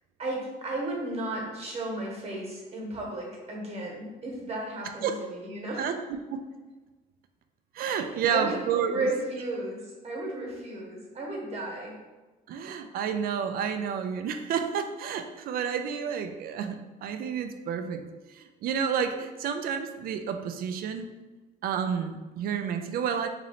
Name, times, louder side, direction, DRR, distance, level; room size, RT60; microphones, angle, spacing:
voice 1, 0.2-6.0 7.9-12.0, right 2 dB, 40° right, -1 dB, 1.1 m, -34 dB
voice 2, 7.7-9.1 12.5-18.0 18.3-21.1 21.6-23.3, right 7 dB, 60° right, 7 dB, 0.4 m, -30 dB
3.0 x 2.7 x 4.1 m, 1.2 s
cardioid pair, 110°, 17 cm